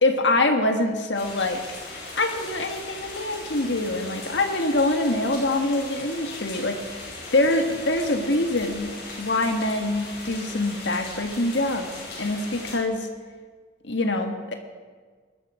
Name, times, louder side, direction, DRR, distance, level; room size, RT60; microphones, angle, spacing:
voice 1, 0.0-1.6 2.2-7.0 7.3-8.9 9.2-13.1 13.8-14.5, left 2 dB, 80° left, 5 dB, 1.6 m, -24 dB
sound 1, 1.1-12.8, left 2 dB, 55° left, 5.4 m, -38 dB
19.5 x 12.5 x 4.9 m, 1.5 s
head